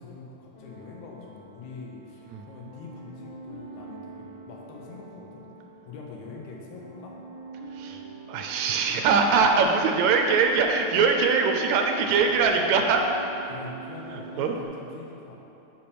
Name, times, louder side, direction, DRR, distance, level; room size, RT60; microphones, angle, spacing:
voice 1, 0.0-5.5 5.9-7.2 13.5-15.4, left 4 dB, 75° left, -1 dB, 2.4 m, -43 dB
sound 1, 0.5-14.6, right 4 dB, 60° left, 2.0 m, -44 dB
voice 2, 8.3-13.1 14.1-14.6, right 5 dB, 80° right, 3 dB, 1.9 m, -22 dB
6.1 x 5.7 x 6.7 m, 2.9 s
omnidirectional pair, 3.5 m